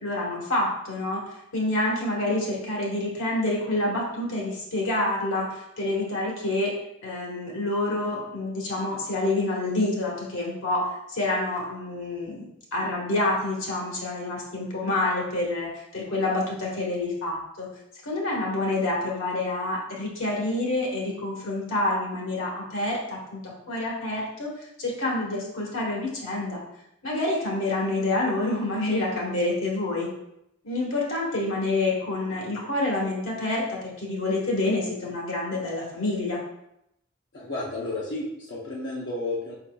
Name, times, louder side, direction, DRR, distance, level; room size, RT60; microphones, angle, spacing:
voice 1, 0.0-6.7 7.0-17.7 18.0-26.6 27.0-30.1 30.6-36.4, left 2 dB, 85° left, -3 dB, 1.3 m, -27 dB
voice 2, 37.3-39.5, left 2 dB, 60° left, -5 dB, 0.8 m, -32 dB
5.1 x 4.0 x 2.3 m, 0.80 s
head